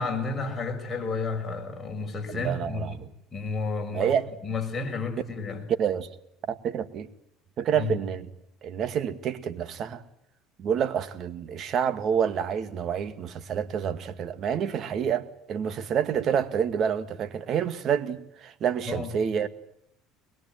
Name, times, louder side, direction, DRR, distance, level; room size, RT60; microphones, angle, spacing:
voice 1, 0.0-3.0 3.3-4.1 4.4-5.6 7.7-8.0 18.9-19.1, left 3 dB, 20° left, 6.4 m, -31 dB
voice 2, 2.3-3.1 3.9-4.3 5.8-6.1 6.5-7.1 7.6-8.3 8.6-10.0 10.6-19.5, right 8 dB, 45° right, 2.1 m, -28 dB
23.0 x 21.5 x 9.2 m
supercardioid pair, 110°, 0 cm